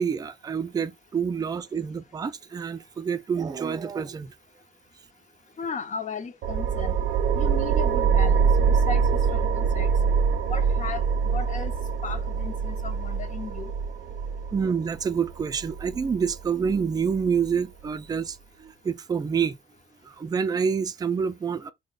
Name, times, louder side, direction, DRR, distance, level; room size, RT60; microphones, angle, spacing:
voice 1, 0.0-4.3 10.4-10.5 14.5-19.6 20.0-21.7, right 6 dB, 20° right, 0.3 m, -27 dB
voice 2, 5.6-7.0 7.4-9.9 10.5-11.8 12.0-13.7, left 5 dB, 40° left, 0.6 m, -36 dB
sound 1, 6.4-17.5, right 6 dB, 70° right, 0.5 m, -24 dB
3.1 x 2.1 x 3.6 m
cardioid pair, 90°, 20 cm